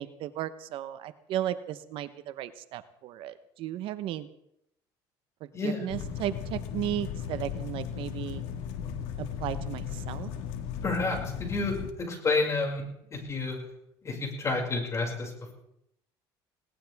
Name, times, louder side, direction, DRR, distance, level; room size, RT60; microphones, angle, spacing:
voice 1, 0.0-4.3 5.4-8.4 9.2-10.3, right 12 dB, 65° right, 12 dB, 1.0 m, -35 dB
voice 2, 5.5-5.9 10.8-11.7 12.1-12.8 13.1-13.6 14.0-15.3, left 3 dB, 30° left, 1 dB, 6.0 m, -29 dB
sound 1, 5.9-11.9, left 8 dB, 85° left, 1.8 m, -36 dB
20.5 x 18.5 x 3.6 m, 0.78 s
cardioid pair, 120°, 10 cm